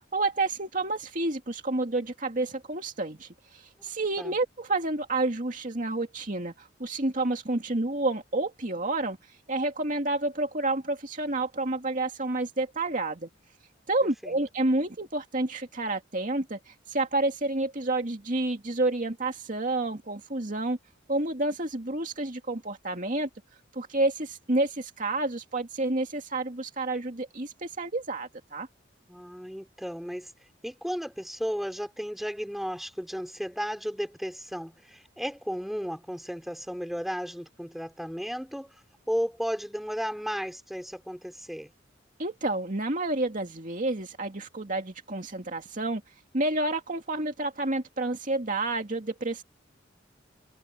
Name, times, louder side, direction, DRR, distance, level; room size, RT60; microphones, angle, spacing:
voice 1, 0.1-9.2 9.5-13.3 13.9-20.8 21.1-23.3 23.8-28.7 42.2-46.0 46.3-49.4, right 2 dB, 45° right, 2.4 m, -29 dB
voice 2, 29.1-30.3 30.6-38.7 39.1-41.7, equal, ahead, 4.2 m, -34 dB
head